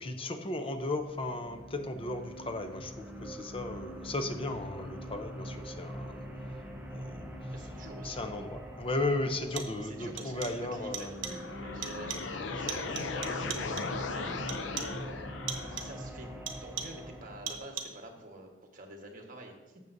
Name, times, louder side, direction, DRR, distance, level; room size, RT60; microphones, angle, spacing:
voice 1, 0.0-6.2 6.9-11.1 12.2-12.3 13.5-13.8, left 2 dB, 30° left, 7 dB, 0.6 m, -36 dB
sound 1, 0.6-17.6, equal, 10° right, 0.8 m, -44 dB
voice 2, 7.5-8.2 9.8-13.6 14.0-15.3 15.7-16.3 16.6-19.8, right 1 dB, 45° right, 2 dB, 1.3 m, -47 dB
sound 2, 8.3-8.4 9.3-9.9 10.2-10.7 10.9-11.5 11.8-12.4 12.7-14.0 14.5-15.1 15.5-16.0 16.5-17.1 17.5-18.1, right 7 dB, 80° right, 0.8 m, -41 dB
sound 3, 11.1-16.0, left 4 dB, 70° left, 0.6 m, -38 dB
12.5 x 7.3 x 2.6 m, 1.2 s
head